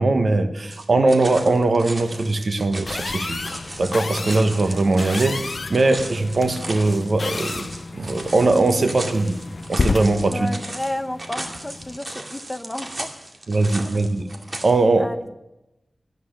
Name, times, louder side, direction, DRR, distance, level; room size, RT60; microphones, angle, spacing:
voice 1, 0.0-3.5 3.8-7.7 7.9-9.4 9.7-10.5 13.5-14.3 14.6-15.1, right 2 dB, 70° right, 8 dB, 1.1 m, -20 dB
sound 1, 0.7-14.7, right 1 dB, 40° right, 2.2 m, -36 dB
sound 2, 2.9-12.0, left 3 dB, 60° left, 0.4 m, -31 dB
voice 2, 10.3-13.2 13.6-13.7 15.0-15.4, left 1 dB, 20° left, 10 dB, 0.8 m, -32 dB
13.5 x 9.5 x 6.4 m, 0.96 s
wide cardioid pair, 65°, 0 cm